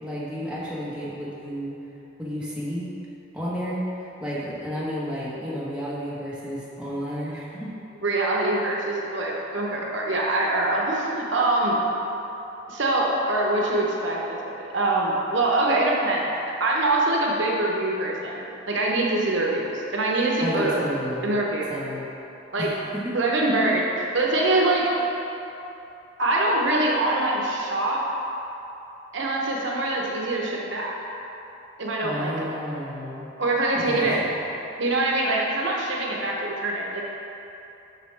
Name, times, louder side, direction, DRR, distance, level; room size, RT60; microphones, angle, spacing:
voice 1, 0.0-1.8 2.2-2.9 3.3-7.7 20.4-21.3 21.7-22.1 22.6-23.0 32.0-33.3 33.7-34.3, equal, 5° right, -9 dB, 1.2 m, -31 dB
voice 2, 8.0-11.8 12.7-20.8 21.2-21.7 22.5-22.7 23.1-24.9 26.2-28.0 29.1-30.9 31.8-32.5 33.4-34.2 34.8-37.0, right 2 dB, 75° right, -2 dB, 0.9 m, -24 dB
6.6 x 6.2 x 3.3 m, 3.0 s
head